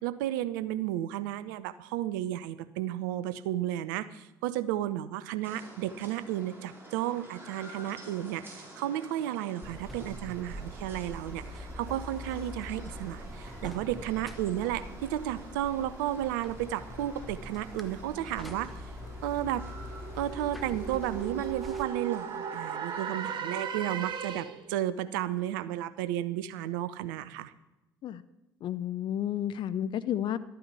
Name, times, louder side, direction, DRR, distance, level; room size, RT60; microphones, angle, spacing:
voice 1, 0.0-18.7 19.2-19.6 20.1-27.5, right 12 dB, 70° right, 14 dB, 0.7 m, -33 dB
sound 1, 5.4-23.8, right 1 dB, 20° right, 5.2 m, -49 dB
Buzz, 9.6-21.8, left 1 dB, ahead, 1.4 m, -43 dB
sound 2, 18.7-24.7, right 7 dB, 45° right, 1.3 m, -38 dB
voice 2, 28.6-30.4, left 10 dB, 45° left, 14 dB, 0.6 m, -31 dB
12.5 x 9.3 x 6.9 m, 0.95 s
figure-of-eight pair, 55°, 11 cm